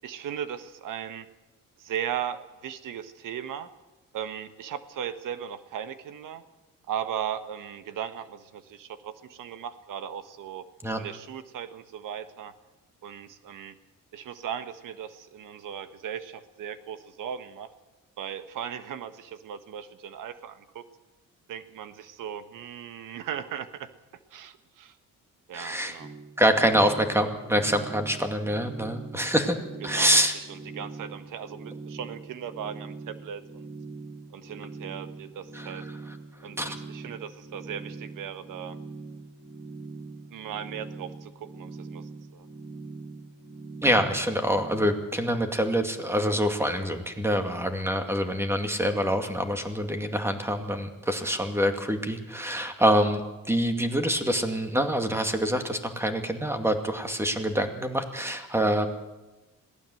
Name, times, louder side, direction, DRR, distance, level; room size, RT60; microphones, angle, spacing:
voice 1, 0.0-1.3 1.8-3.7 4.1-6.4 6.9-10.6 11.0-12.5 13.0-13.7 14.1-17.7 18.2-20.8 21.5-23.9 24.3-25.0 25.5-26.1 29.8-33.7 34.3-35.8 36.4-38.8 40.3-42.5 51.2-51.3, right 9 dB, 70° right, 10 dB, 1.5 m, -37 dB
voice 2, 25.5-26.0 26.4-29.6 29.8-30.3 35.5-35.7 36.6-36.8 43.8-53.2 53.5-58.9, equal, 10° right, 5 dB, 2.3 m, -25 dB
sound 1, 26.0-44.9, right 3 dB, 25° right, 2.1 m, -42 dB
21.5 x 16.0 x 7.9 m, 1.1 s
cardioid pair, 125°, 33 cm